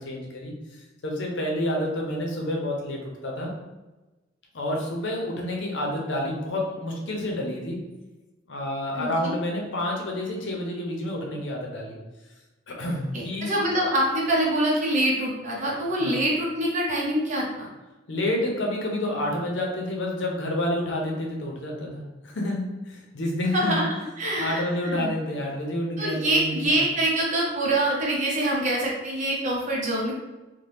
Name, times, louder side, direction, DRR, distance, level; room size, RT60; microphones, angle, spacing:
voice 1, 0.0-3.5 4.5-7.8 8.5-12.0 12.7-13.6 16.0-16.2 18.1-23.8 24.4-26.9, left 1 dB, 70° left, -1 dB, 0.7 m, -29 dB
voice 2, 8.9-9.3 13.4-17.7 23.5-23.9 24.2-25.1 26.0-30.1, right 1 dB, 40° right, -3 dB, 0.7 m, -25 dB
2.8 x 2.2 x 3.4 m, 1.1 s
head